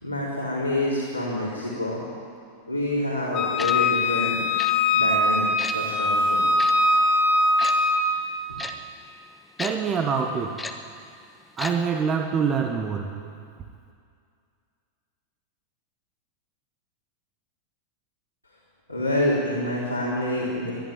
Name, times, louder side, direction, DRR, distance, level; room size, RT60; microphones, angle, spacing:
voice 1, 0.0-2.0 2.7-4.4 4.9-5.5 5.7-6.4 18.9-20.7, left 1 dB, 90° right, -6 dB, 3.7 m, -27 dB
Wind instrument woodwind instrument, 3.3-8.0, left 2 dB, 35° left, 3.2 m, -21 dB
Tick-tock, 3.6-3.7 4.6-4.7 5.6-5.8 6.6-6.7 7.6-7.7 8.6-8.7 9.6-9.7 10.6-10.7 11.6-11.7 12.0-12.1, left 3 dB, 10° left, 1.3 m, -32 dB
voice 2, 9.6-10.6 11.6-13.1, right 6 dB, 25° right, 5 dB, 1.3 m, -25 dB
22.0 x 12.5 x 9.6 m, 2.3 s
figure-of-eight pair, 90°, 0 cm